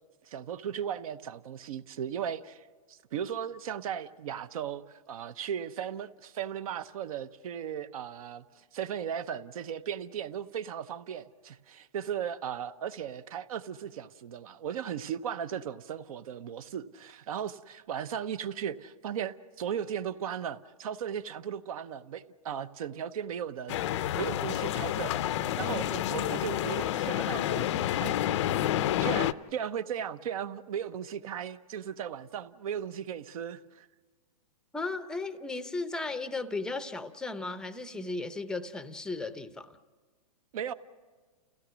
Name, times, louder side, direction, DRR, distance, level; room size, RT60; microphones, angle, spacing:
voice 1, 0.3-25.1 25.6-27.7 28.0-28.2 29.0-33.9 40.5-40.7, right 8 dB, 60° right, 0.9 m, -36 dB
sound 1, 23.7-29.3, left 12 dB, 45° left, 0.5 m, -29 dB
voice 2, 34.7-39.7, left 3 dB, 5° left, 0.6 m, -35 dB
30.0 x 16.0 x 6.2 m
hypercardioid pair, 150°, 21 cm